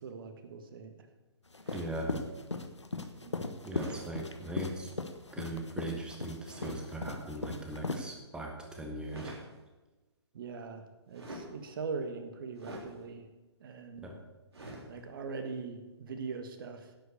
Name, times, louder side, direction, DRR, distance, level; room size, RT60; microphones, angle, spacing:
voice 1, 0.0-0.9 3.2-3.6 10.3-13.3 13.6-14.1 14.9-16.9, right 4 dB, 50° right, 7 dB, 1.7 m, -41 dB
sound 1, 1.5-8.0, left 3 dB, 85° left, 1.2 m, -37 dB
sound 2, 1.6-2.0 3.7-4.0 6.4-6.8 9.0-9.5 11.1-11.5 12.6-12.9 14.5-14.9, right 1 dB, 65° right, 3.7 m, -45 dB
voice 2, 1.7-2.1 3.6-4.9 5.3-9.3 14.0-14.2, right 1 dB, 5° right, 2 dB, 1.6 m, -39 dB
11.0 x 8.1 x 6.8 m, 1.2 s
figure-of-eight pair, 130°, 14 cm